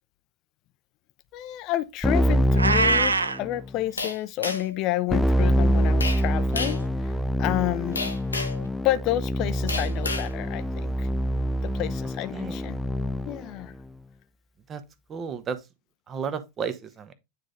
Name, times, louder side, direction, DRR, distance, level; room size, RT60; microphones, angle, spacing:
voice 1, 1.3-7.1 7.4-8.1 8.6-11.1 11.6-12.8 13.3-13.7, left 15 dB, 40° left, 0.7 m, -30 dB
Keyboard (musical), 2.0-3.7 5.1-13.5, equal, 5° left, 0.4 m, -25 dB
Meow, 2.5-3.4, right 3 dB, 75° right, 0.6 m, -22 dB
sound 1, 4.0-4.8 6.0-6.2 6.6-6.9 8.0-8.6 9.7-10.3, left 3 dB, 80° left, 1.0 m, -31 dB
voice 2, 15.1-15.6 16.1-17.1, right 6 dB, 25° right, 1.0 m, -33 dB
9.5 x 3.7 x 3.4 m
figure-of-eight pair, 90°, 0 cm